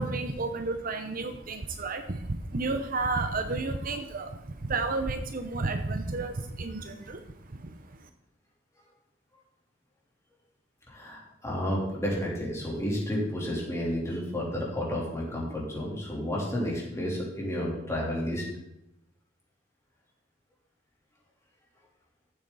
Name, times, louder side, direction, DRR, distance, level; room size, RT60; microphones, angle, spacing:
voice 1, 0.0-7.7, right 3 dB, 45° right, 7 dB, 0.8 m, -31 dB
voice 2, 10.9-18.4, equal, 15° left, -4 dB, 3.4 m, -31 dB
14.0 x 8.3 x 4.1 m, 0.82 s
head